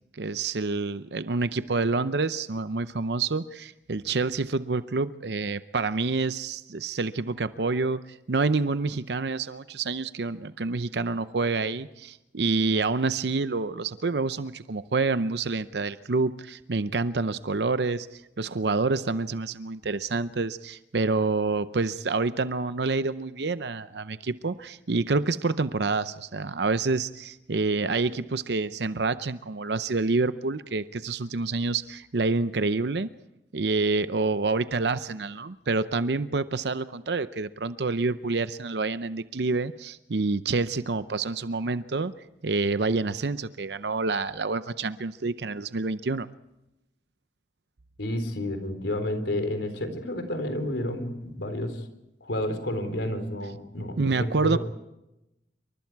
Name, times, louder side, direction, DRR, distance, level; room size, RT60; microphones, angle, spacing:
voice 1, 0.2-33.1 33.5-42.1 42.4-46.3 54.0-54.6, right 3 dB, 65° right, 13 dB, 0.7 m, -27 dB
voice 2, 48.0-51.8 52.2-54.6, left 1 dB, 75° left, 8 dB, 3.8 m, -30 dB
27.5 x 24.0 x 4.7 m, 0.91 s
head